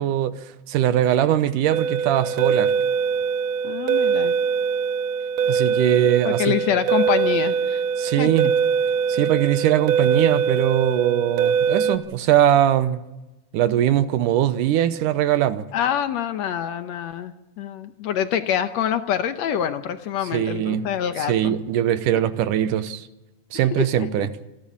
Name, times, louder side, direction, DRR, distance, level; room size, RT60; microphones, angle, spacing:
voice 1, 0.0-2.7 5.5-6.6 8.0-8.5 9.1-13.0 13.5-15.7 20.3-20.9 21.2-23.1 23.5-24.3, right 11 dB, 75° right, 2.3 m, -21 dB
sound 1, 1.7-12.0, right 6 dB, 60° right, 2.4 m, -22 dB
voice 2, 3.6-4.4 6.2-7.8 8.2-8.3 15.7-21.5 23.5-24.3, left 9 dB, 70° left, 1.7 m, -26 dB
27.5 x 11.5 x 8.5 m
omnidirectional pair, 3.9 m